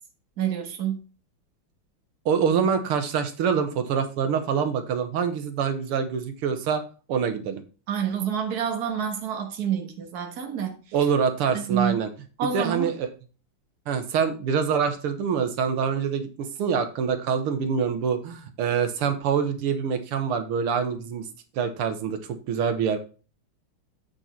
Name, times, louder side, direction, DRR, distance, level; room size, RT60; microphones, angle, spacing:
voice 1, 0.4-1.0 7.9-10.8 11.5-12.0 12.4-12.9, right 8 dB, 50° right, 1.8 m, -28 dB
voice 2, 2.3-6.8 7.1-7.6 10.9-12.1 12.5-12.9 13.9-21.3 21.6-23.0, right 6 dB, 90° right, 2.0 m, -25 dB
8.3 x 5.3 x 4.4 m
omnidirectional pair, 2.4 m